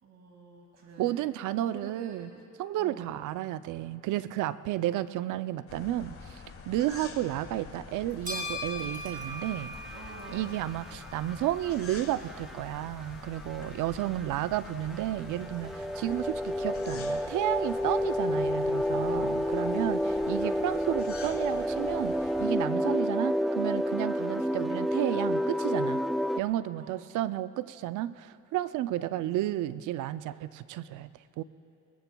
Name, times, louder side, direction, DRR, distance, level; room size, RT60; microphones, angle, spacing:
voice 1, 0.0-1.3 1.6-2.4 2.8-3.1 7.0-7.1 9.9-10.6 19.4-20.3 26.8-27.4, right 3 dB, 60° right, 0 dB, 2.1 m, -49 dB
voice 2, 1.0-2.3 2.6-9.8 10.3-26.0 26.4-31.1 31.4-31.5, right 14 dB, 80° right, 14 dB, 0.5 m, -32 dB
sound 1, 5.7-22.5, left 5 dB, 45° left, 1.3 m, -47 dB
sound 2, 7.9-21.7, left 1 dB, 25° right, 2.9 m, -45 dB
sound 3, 9.1-26.4, equal, ahead, 0.3 m, -30 dB
22.5 x 20.0 x 2.3 m, 2.7 s
cardioid pair, 90°, 30 cm